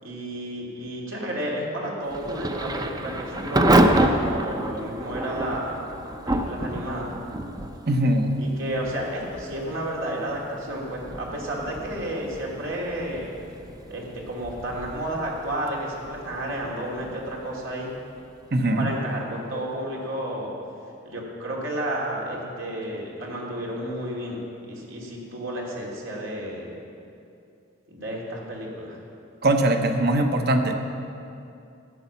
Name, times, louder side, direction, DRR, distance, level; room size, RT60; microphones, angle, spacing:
voice 1, 0.0-5.8 6.3-7.1 8.4-13.3 13.9-17.9 18.8-20.5 21.0-26.7 27.9-29.0, right 1 dB, 85° right, -3 dB, 2.7 m, -31 dB
Thunder / Rain, 2.1-18.8, right 1 dB, 20° right, 0.6 m, -28 dB
voice 2, 7.9-8.3 18.5-18.9 29.4-30.8, right 1 dB, 55° right, 5 dB, 1.0 m, -21 dB
13.0 x 8.9 x 6.9 m, 2.6 s
head